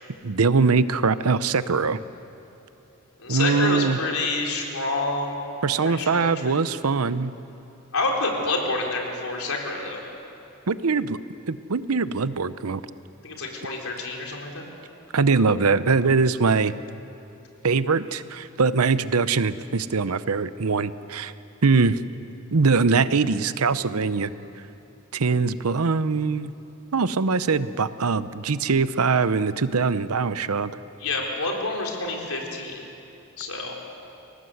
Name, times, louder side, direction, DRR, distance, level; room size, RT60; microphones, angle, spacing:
voice 1, 0.2-2.0 3.3-4.0 5.6-7.3 10.7-11.2 11.5-12.8 15.1-16.7 17.6-21.3 21.6-22.0 22.5-24.3 25.1-26.5 26.9-30.7, right 4 dB, 85° right, 14 dB, 0.8 m, -22 dB
voice 2, 3.2-5.4 5.8-6.6 7.9-10.0 13.2-14.6 31.0-32.9 33.4-33.7, left 2 dB, 75° left, 0 dB, 4.1 m, -28 dB
27.5 x 18.0 x 8.0 m, 2.9 s
head